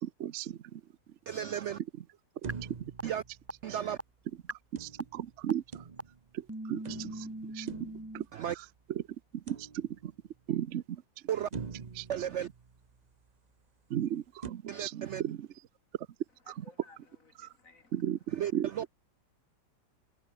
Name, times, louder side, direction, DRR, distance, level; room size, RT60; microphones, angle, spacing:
voice 1, 0.0-0.8 2.4-2.5 4.7-5.6 6.3-7.3 7.5-7.7 8.1-8.2 8.5-9.0 9.3-10.1 10.5-11.0 12.0-12.1 13.9-15.5 16.5-16.6 17.9-18.7, right 10 dB, 55° right, 0.9 m, -35 dB
voice 2, 1.3-1.8 3.0-3.2 3.6-4.0 8.3-8.5 11.3-11.5 12.1-12.5 14.7-15.2 18.4-18.9, right 10 dB, 90° right, 0.6 m, -34 dB
sound 1, 2.4-4.0 4.8-6.4 6.8-8.8 9.5-10.3 10.8-10.9 11.5-13.2 14.4-14.5, right 5 dB, 30° right, 0.8 m, -45 dB
sound 2, 2.5-2.6 3.0-3.1 3.5-3.6 4.0-4.1 4.5-4.6 5.0-5.1 5.5-5.6 6.0-6.1 6.5-8.2, right 1 dB, 10° right, 1.7 m, -39 dB
voice 3, 16.4-18.0, left 3 dB, 50° left, 2.9 m, -58 dB
omnidirectional pair, 1.9 m